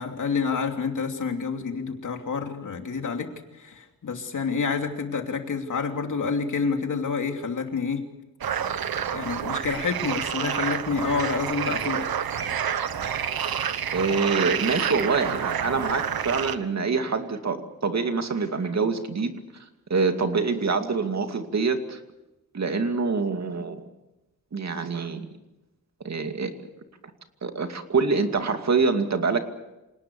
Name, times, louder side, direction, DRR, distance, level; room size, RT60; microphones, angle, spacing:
voice 1, 0.0-3.3 3.6-8.0 9.1-12.0, left 5 dB, 55° left, 4 dB, 3.0 m, -28 dB
sound 1, 8.4-16.6, right 8 dB, 75° right, 1.3 m, -28 dB
voice 2, 13.9-19.4 19.9-22.0 22.5-23.8 24.5-25.3 26.0-26.5 27.4-29.4, right 4 dB, 45° right, 6 dB, 2.4 m, -25 dB
27.5 x 18.5 x 7.1 m, 0.99 s
wide cardioid pair, 120°, 36 cm